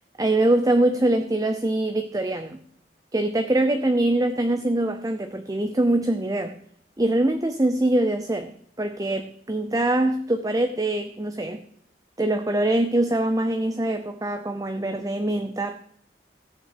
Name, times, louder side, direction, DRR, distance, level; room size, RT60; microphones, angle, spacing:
voice 1, 0.2-2.6 3.1-6.6 7.0-8.5 8.8-11.6 12.2-15.8, right 1 dB, 20° right, 8 dB, 0.7 m, -23 dB
16.0 x 6.2 x 8.4 m, 0.65 s
head